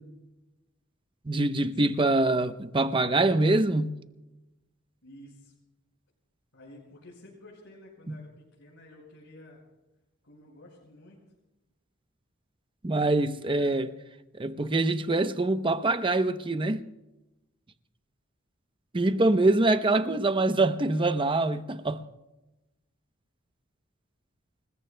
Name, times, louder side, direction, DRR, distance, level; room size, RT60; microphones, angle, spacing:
voice 1, 1.2-4.0 8.1-8.2 12.8-13.9 14.3-16.8 18.9-22.0, right 2 dB, 25° right, 0.7 m, -24 dB
voice 2, 5.0-5.5 6.5-9.6 10.2-11.2 13.3-13.8 19.1-19.3 19.6-19.8, left 1 dB, 70° left, 5.4 m, -51 dB
30.0 x 21.0 x 2.2 m
head